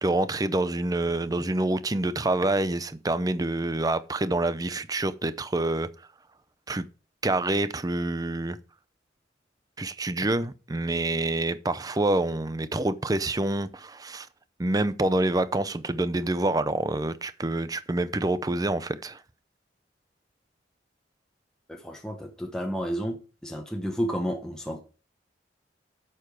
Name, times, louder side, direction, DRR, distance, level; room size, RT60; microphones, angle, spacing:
voice 1, 0.0-5.9 6.7-6.8 7.2-8.6 9.8-14.3 14.6-19.2, right 2 dB, 20° right, 0.5 m, -27 dB
voice 2, 21.7-23.2 23.4-24.8, equal, 5° left, 0.9 m, -31 dB
8.6 x 6.8 x 4.8 m
head